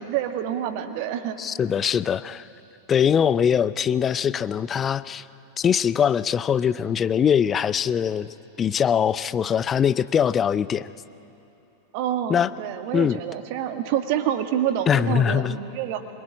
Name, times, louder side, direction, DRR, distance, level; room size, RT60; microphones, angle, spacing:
voice 1, 0.0-1.4 11.9-16.1, right 10 dB, 45° right, 7 dB, 1.8 m, -27 dB
voice 2, 1.4-2.5 2.9-5.2 5.6-10.9 12.3-12.5 12.9-13.2 14.9-15.6, left 8 dB, 25° left, 17 dB, 0.6 m, -22 dB
24.5 x 21.5 x 9.9 m, 2.9 s
figure-of-eight pair, 90°, 0 cm